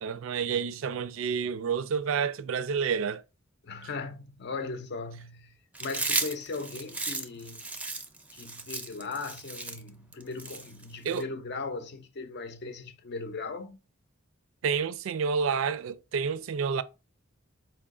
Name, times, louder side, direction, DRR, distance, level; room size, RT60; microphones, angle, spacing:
voice 1, 0.0-3.2 11.0-11.2 14.6-16.8, right 6 dB, 75° right, 0.4 m, -29 dB
voice 2, 3.6-7.7 8.3-13.8, left 3 dB, 55° left, 0.6 m, -38 dB
Chewing mastication, 5.7-11.2, right 3 dB, 5° right, 0.5 m, -34 dB
4.4 x 2.3 x 3.6 m
head